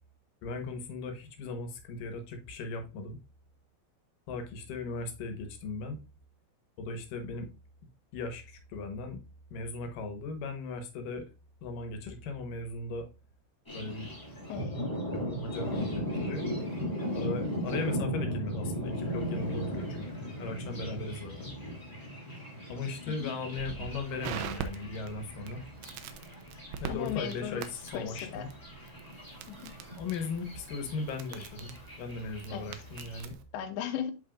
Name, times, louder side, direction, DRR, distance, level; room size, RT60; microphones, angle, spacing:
voice 1, 0.4-3.2 4.3-6.0 6.8-7.5 8.1-9.2 9.5-11.3 11.6-13.1 13.7-14.1 15.3-16.4 17.1-21.5 22.7-25.6 26.8-28.5 30.0-33.4, left 3 dB, 70° left, 5 dB, 2.3 m, -37 dB
Thunder, 13.6-33.2, equal, 20° left, 0.5 m, -38 dB
voice 2, 14.5-15.0 23.1-23.3 26.9-27.6 27.9-28.5 29.5-29.8 32.5-32.7 33.5-34.1, left 9 dB, 85° left, 7 dB, 2.9 m, -37 dB
Crackle, 23.6-33.4, right 7 dB, 85° right, 2.0 m, -44 dB
11.0 x 4.2 x 2.5 m, 0.29 s
omnidirectional pair, 5.1 m